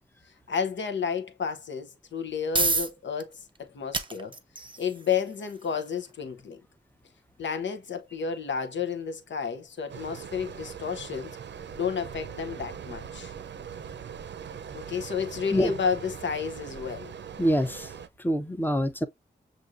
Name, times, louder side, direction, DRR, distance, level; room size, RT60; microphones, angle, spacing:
voice 1, 0.5-4.3 4.8-6.6 7.4-11.4 11.7-13.3 14.7-17.1, left 6 dB, 80° left, 0.9 m, -31 dB
sound 1, 2.0-16.9, right 3 dB, 25° right, 0.7 m, -38 dB
sound 2, 9.9-18.1, right 7 dB, 75° right, 0.6 m, -41 dB
voice 2, 17.4-17.9 18.2-19.1, equal, 10° left, 0.7 m, -25 dB
6.2 x 2.6 x 2.5 m
cardioid pair, 55°, 19 cm